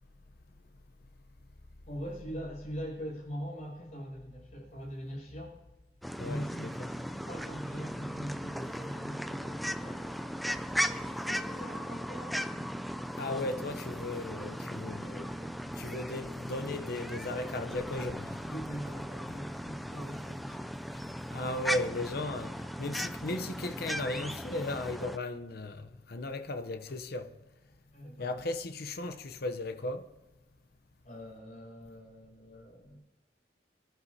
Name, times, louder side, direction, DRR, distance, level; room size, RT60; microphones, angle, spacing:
voice 1, 1.9-5.6 6.2-10.4 11.2-13.0 15.0-15.7 18.5-20.6 27.9-28.4 31.0-33.0, equal, 45° left, 6.2 m, -43 dB
sound 1, 6.0-25.2, equal, ahead, 0.4 m, -37 dB
voice 2, 6.2-6.9 13.2-15.3 15.8-18.5 20.9-21.0 21.3-27.3 28.2-30.1, left 2 dB, 60° left, 0.7 m, -36 dB
25.5 x 11.5 x 2.8 m
head